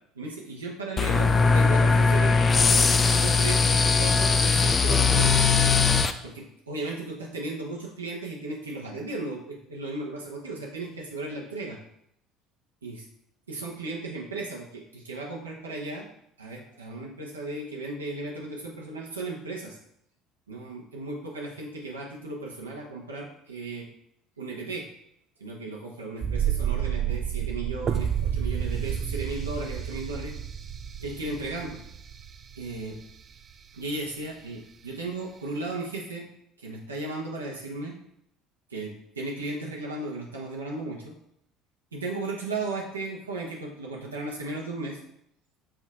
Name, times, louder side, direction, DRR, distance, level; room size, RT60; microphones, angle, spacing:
voice 1, 0.1-2.3 3.1-5.3 6.2-11.8 12.8-13.0 13.5-16.1 16.4-19.8 20.5-23.9 24.4-24.9 25.4-30.3 31.0-31.8 32.6-33.0 33.7-36.3 36.6-38.0 38.7-41.2 41.9-45.0, right 2 dB, 85° right, -2 dB, 1.3 m, -35 dB
sound 1, 1.0-6.1, left 4 dB, 30° left, 0.5 m, -20 dB
sound 2, 26.2-33.0 33.3-33.4, right 9 dB, 40° right, 0.4 m, -30 dB
6.4 x 4.3 x 4.8 m, 0.73 s
figure-of-eight pair, 60°, 0 cm